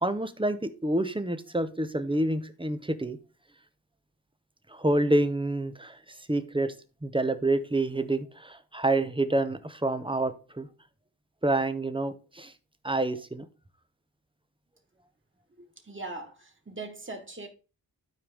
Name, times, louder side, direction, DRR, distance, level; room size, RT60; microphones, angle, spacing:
voice 1, 0.0-3.2 4.7-6.0 6.3-6.7 7.0-10.7 11.4-12.5 12.8-13.5, right 2 dB, 10° right, 1.1 m, -28 dB
voice 2, 15.6-17.5, right 2 dB, 25° right, 2.4 m, -41 dB
12.0 x 4.8 x 3.6 m
cardioid pair, 50°, 43 cm